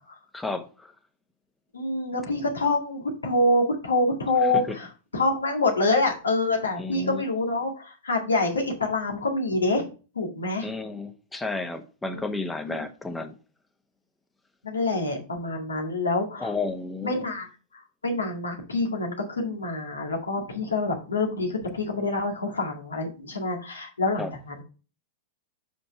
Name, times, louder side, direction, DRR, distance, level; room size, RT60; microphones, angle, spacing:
voice 1, 0.3-0.9 4.5-4.7 6.8-7.3 10.6-13.3 16.4-17.3 24.2-24.3, left 3 dB, 10° left, 1.0 m, -32 dB
voice 2, 1.7-9.9 10.2-10.7 12.1-12.2 12.7-12.8 14.6-16.5 17.0-17.5 17.7-24.6, left 2 dB, 80° left, 2.0 m, -26 dB
6.3 x 5.2 x 4.7 m
figure-of-eight pair, 100°, 0 cm